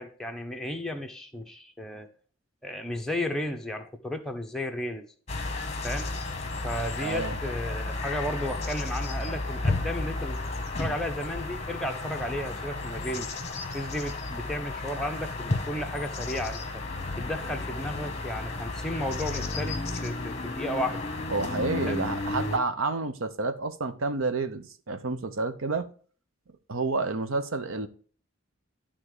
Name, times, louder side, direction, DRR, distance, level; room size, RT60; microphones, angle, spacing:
voice 1, 0.0-2.1 2.6-5.1 5.8-6.1 6.6-10.4 10.8-13.3 13.7-16.6 17.2-21.1 21.8-22.0, left 1 dB, ahead, 1.0 m, -34 dB
sound 1, 5.3-22.6, left 2 dB, 35° left, 1.2 m, -33 dB
voice 2, 7.0-7.4 21.3-25.9 26.7-27.9, right 3 dB, 85° right, 0.8 m, -29 dB
11.0 x 3.7 x 6.7 m
head